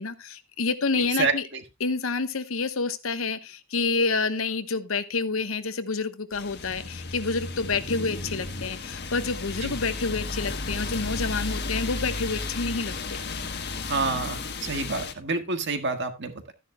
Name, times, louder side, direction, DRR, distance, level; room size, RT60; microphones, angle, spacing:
voice 1, 0.0-1.5 1.8-13.2, left 4 dB, 80° left, 11 dB, 1.0 m, -28 dB
voice 2, 1.2-1.6 9.6-9.7 13.9-16.5, right 4 dB, 60° right, 6 dB, 1.7 m, -28 dB
sound 1, 6.3-15.1, left 3 dB, 55° left, 1.3 m, -33 dB
13.5 x 10.5 x 2.2 m, 0.23 s
head